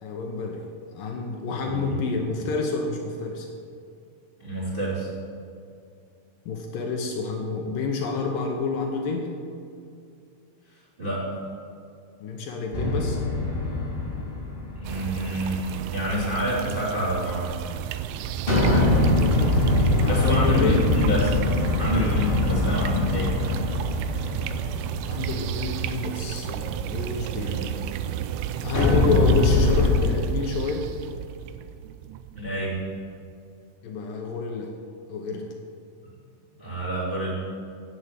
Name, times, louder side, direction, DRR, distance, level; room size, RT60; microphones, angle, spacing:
voice 1, 0.0-0.7 0.9-3.5 6.5-9.3 12.2-13.2 20.0-20.8 22.2-22.4 25.1-27.6 28.6-30.9 33.8-34.7 35.1-35.5, left 4 dB, 80° left, 2 dB, 1.9 m, -29 dB
voice 2, 1.6-2.0 4.4-5.1 11.0-11.2 14.7-17.4 18.6-18.9 20.1-21.3 21.8-23.3 27.4-27.6 32.3-32.8 36.6-37.3, equal, 15° right, -9 dB, 2.7 m, -27 dB
sound 1, 12.7-15.3 18.5-25.7 28.7-29.9, left 2 dB, 35° left, 0.9 m, -23 dB
sound 2, 14.8-33.0, right 10 dB, 90° right, 2.3 m, -32 dB
9.7 x 8.3 x 7.5 m, 2.4 s
omnidirectional pair, 5.2 m